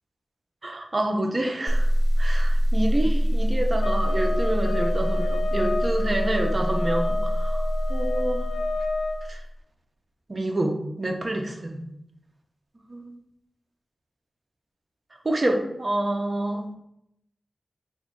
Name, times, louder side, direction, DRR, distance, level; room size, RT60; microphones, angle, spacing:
voice 1, 0.6-1.9 2.2-7.6 7.9-8.4 9.3-9.4 10.3-10.7 11.0-11.8 12.9-13.1 15.2-16.6, right 1 dB, 40° right, 3 dB, 0.5 m, -27 dB
sound 1, 1.7-9.5, equal, 15° left, 0.4 m, -24 dB
sound 2, 3.8-9.2, left 3 dB, 90° left, 0.3 m, -31 dB
3.4 x 2.0 x 3.7 m, 0.78 s
wide cardioid pair, 95°, 0 cm